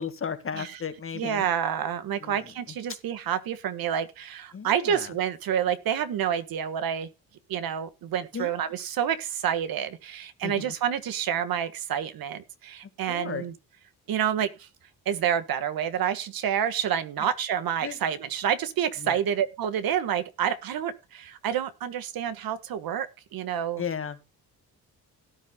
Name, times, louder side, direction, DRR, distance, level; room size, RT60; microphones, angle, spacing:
voice 1, 0.0-1.5 2.2-2.5 4.5-5.1 8.3-8.6 10.4-10.8 13.1-13.4 17.8-18.0 19.0-19.2 23.8-24.2, left 6 dB, 35° left, 9 dB, 1.8 m, -35 dB
voice 2, 1.1-7.1 7.5-13.5 14.1-14.7 15.0-23.8, right 9 dB, 70° right, 11 dB, 1.5 m, -28 dB
17.5 x 10.0 x 2.2 m, 0.27 s
cardioid pair, 115°, 37 cm